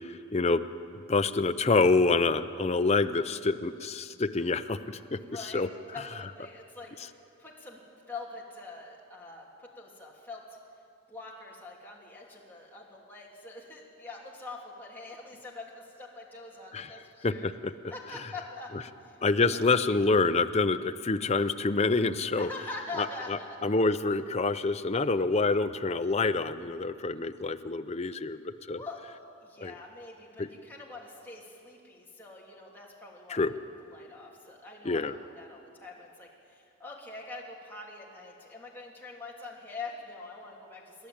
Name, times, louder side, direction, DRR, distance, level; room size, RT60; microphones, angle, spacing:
voice 1, 0.1-0.7 1.1-5.2 5.5-5.7 16.7-16.9 17.2-17.7 19.2-22.5 23.0-28.8 29.6-29.7 30.4-30.5 33.3-33.5 34.8-35.1, left 3 dB, 30° left, 10 dB, 0.6 m, -27 dB
voice 2, 5.1-5.7 5.9-7.8 8.1-10.4 11.1-17.5 17.9-18.7 19.0-19.2 19.5-19.6 22.4-23.6 28.8-29.0 29.4-33.5 33.8-41.1, left 3 dB, 10° left, -4 dB, 3.1 m, -44 dB
28.0 x 11.5 x 8.7 m, 2.5 s
head